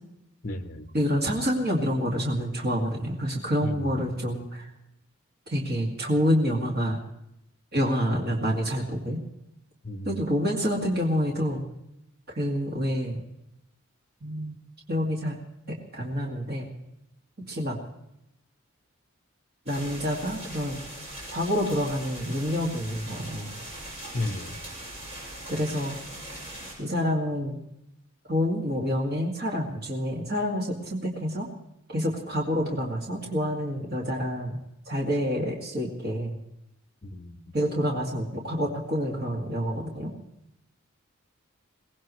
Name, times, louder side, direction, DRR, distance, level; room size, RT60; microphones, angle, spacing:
voice 1, 0.4-0.9 3.6-3.9 9.8-10.2 24.1-24.6 37.0-37.6, left 2 dB, 40° left, 7 dB, 1.1 m, -33 dB
voice 2, 0.9-4.7 5.5-7.0 7.7-9.2 10.1-11.6 12.3-13.2 14.2-14.6 14.9-15.4 15.7-16.7 17.4-17.8 19.7-20.8 21.3-23.6 25.5-26.0 26.8-27.6 28.3-31.5 31.9-34.6 34.9-36.4 37.5-40.1, equal, 50° right, -1 dB, 2.2 m, -27 dB
sound 1, 19.7-26.7, right 1 dB, 30° right, 7.0 m, -41 dB
23.0 x 18.0 x 3.2 m, 0.83 s
head